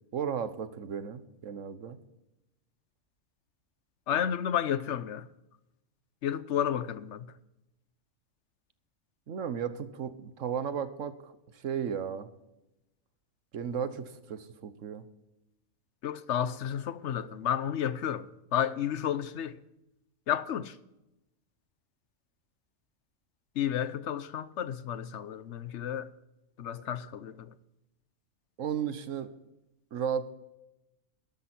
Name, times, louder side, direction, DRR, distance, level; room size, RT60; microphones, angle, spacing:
voice 1, 0.1-2.0 9.3-12.3 13.5-15.0 28.6-29.3 29.9-30.3, right 7 dB, 80° right, 1.4 m, -34 dB
voice 2, 4.1-5.2 6.2-7.3 16.0-19.6 20.3-20.7 23.6-26.1 26.6-27.3, left 9 dB, 70° left, 1.0 m, -31 dB
12.5 x 12.5 x 4.4 m
omnidirectional pair, 1.3 m